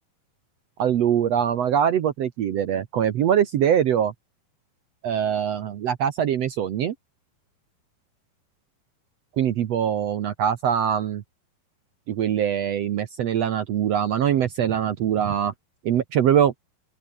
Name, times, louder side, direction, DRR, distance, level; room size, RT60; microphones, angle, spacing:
voice 1, 0.8-4.1 5.0-6.9 9.4-11.2 12.1-15.5 15.8-16.5, right 9 dB, 70° right, 1.6 m, -23 dB
open air
omnidirectional pair, 4.3 m